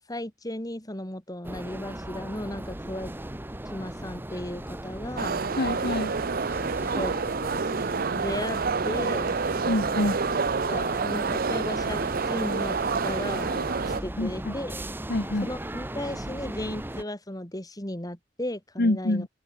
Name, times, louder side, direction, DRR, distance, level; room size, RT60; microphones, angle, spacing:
voice 1, 0.1-3.1 3.7-5.4 6.9-7.2 8.1-8.6 8.8-9.4 10.7-12.0 12.3-14.8 15.4-19.2, left 1 dB, 20° left, 4.6 m, -35 dB
sound 1, 1.4-17.0, right 1 dB, 10° right, 1.0 m, -37 dB
sound 2, 5.2-14.0, right 5 dB, 55° right, 0.7 m, -28 dB
voice 2, 5.6-6.1 9.7-10.2 14.2-14.5 15.1-15.5 18.8-19.3, left 1 dB, 60° left, 1.4 m, -26 dB
open air
head